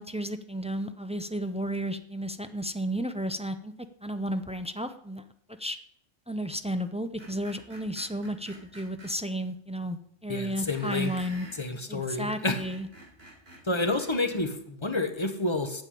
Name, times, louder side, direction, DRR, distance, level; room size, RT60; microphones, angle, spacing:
voice 1, 0.0-3.7 4.0-5.3 5.6-5.8 6.3-11.5 11.9-12.9, equal, 10° right, 9 dB, 0.4 m, -33 dB
Screech, 7.2-9.1 10.7-11.6 12.2-14.4, right 1 dB, 50° right, 4.6 m, -49 dB
voice 2, 10.3-11.1 11.6-12.6 13.6-15.8, left 2 dB, 25° left, 7 dB, 1.1 m, -29 dB
9.4 x 7.5 x 8.5 m, 0.68 s
omnidirectional pair, 1.3 m